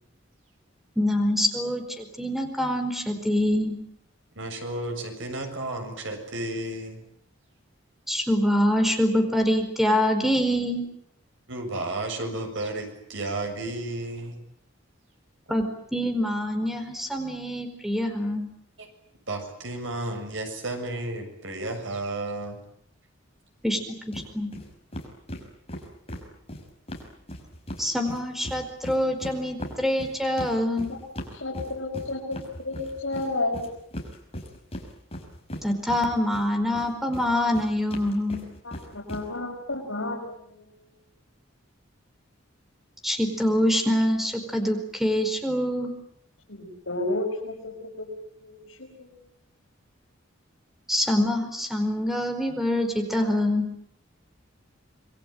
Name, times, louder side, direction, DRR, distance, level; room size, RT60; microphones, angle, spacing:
voice 1, 1.0-3.8 8.1-10.8 15.5-15.6 15.9-18.5 23.6-23.8 24.1-24.5 27.8-30.9 35.6-38.4 43.0-45.9 50.9-53.7, left 1 dB, ahead, 6 dB, 4.7 m, -25 dB
voice 2, 4.4-7.0 11.5-14.4 18.8-18.9 19.3-22.6, right 2 dB, 70° right, 5 dB, 7.0 m, -32 dB
sound 1, 24.1-24.3 24.5-24.7 24.9-27.8 28.1-36.4 36.7-39.2, equal, 30° left, 5.8 m, -38 dB
voice 3, 31.3-32.4 32.6-33.7 38.6-40.7 46.5-48.1 48.4-49.1, left 2 dB, 80° left, -2 dB, 5.7 m, -32 dB
27.5 x 21.5 x 9.2 m, 0.70 s
head